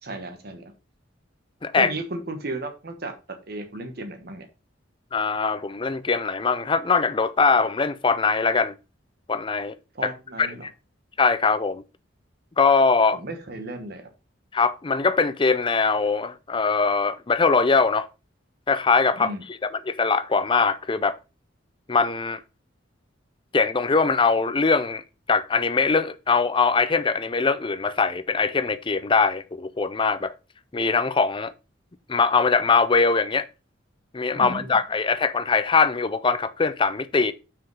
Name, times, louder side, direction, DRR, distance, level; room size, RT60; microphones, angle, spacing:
voice 1, 0.0-0.7 1.8-3.1 3.5-4.5 9.9-10.7 13.1-14.1 19.2-19.4 34.3-34.8, right 2 dB, 55° right, 1.2 m, -34 dB
voice 2, 1.6-1.9 5.1-8.7 9.3-9.8 10.0-10.1 10.4-10.7 11.2-11.8 12.6-13.2 14.5-18.1 18.7-19.3 19.6-21.2 21.9-22.4 23.5-25.0 25.3-30.3 30.7-31.5 32.1-33.5 34.1-37.3, left 4 dB, 25° left, 0.5 m, -22 dB
6.4 x 4.9 x 5.3 m
head